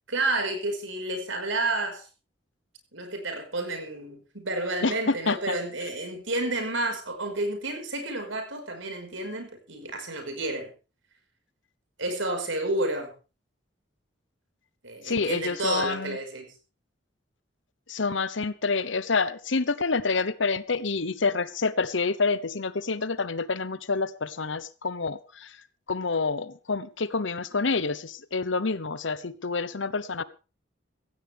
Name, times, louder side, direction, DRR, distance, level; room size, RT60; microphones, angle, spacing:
voice 1, 0.1-2.1 2.9-10.7 12.0-13.1 14.8-16.5, right 2 dB, 85° right, 5 dB, 5.4 m, -30 dB
voice 2, 4.8-5.5 15.0-16.2 17.9-25.6 25.9-30.2, left 4 dB, 75° left, 15 dB, 1.0 m, -28 dB
16.5 x 15.5 x 3.6 m, 0.33 s
head